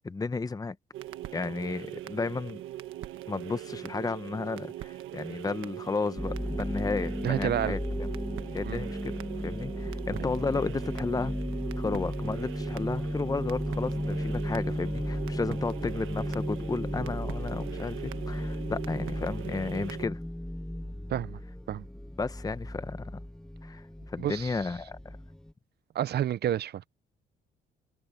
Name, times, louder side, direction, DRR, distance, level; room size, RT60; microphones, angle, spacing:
voice 1, 0.0-0.8 1.3-2.6 3.3-8.1 8.5-9.2 9.4-11.3 11.8-20.2 22.2-23.2 23.6-25.2, left 4 dB, 20° left, 0.8 m, -33 dB
sound 1, 0.9-20.1, right 14 dB, 90° right, 1.3 m, -41 dB
sound 2, 6.2-25.5, left 1 dB, 5° left, 0.3 m, -35 dB
voice 2, 7.2-7.8 8.7-8.8 21.1-21.4 21.7-21.8 24.2-24.5 25.9-26.9, right 11 dB, 55° right, 0.6 m, -29 dB
cardioid pair, 90°, 20 cm